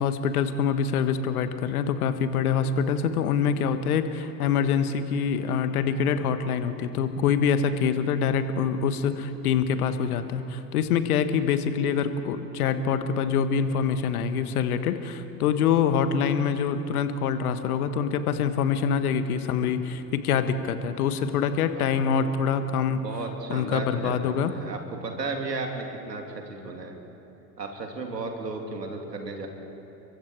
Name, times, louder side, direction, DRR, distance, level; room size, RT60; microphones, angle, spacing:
voice 1, 0.0-23.0 23.5-24.5, left 7 dB, 65° left, 10 dB, 1.6 m, -25 dB
voice 2, 22.9-27.0 27.6-29.5, right 3 dB, 80° right, 3 dB, 2.8 m, -34 dB
30.0 x 23.5 x 4.7 m, 2.8 s
figure-of-eight pair, 80°, 48 cm